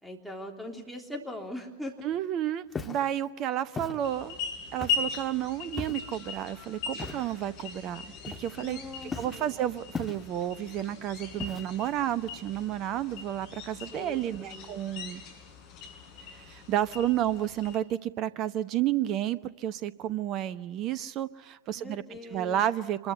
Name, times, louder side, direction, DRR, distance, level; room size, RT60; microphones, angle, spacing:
voice 1, 0.0-2.0 8.6-9.6 13.9-14.7 21.7-22.6, left 1 dB, ahead, 3 dB, 3.5 m, -41 dB
voice 2, 2.0-4.4 4.7-15.2 16.3-23.1, right 11 dB, 35° right, 16 dB, 0.9 m, -31 dB
Walk footsteps, 2.7-3.1 3.8-4.0 4.8-5.2 5.8-6.1 7.0-7.3 8.2-8.7 9.1-9.4 9.9-10.5 11.4-11.9, left 4 dB, 15° left, 2.1 m, -37 dB
sound 1, 4.0-17.8, left 5 dB, 45° left, 5.8 m, -40 dB
26.0 x 22.0 x 8.3 m, 1.0 s
figure-of-eight pair, 90°, 0 cm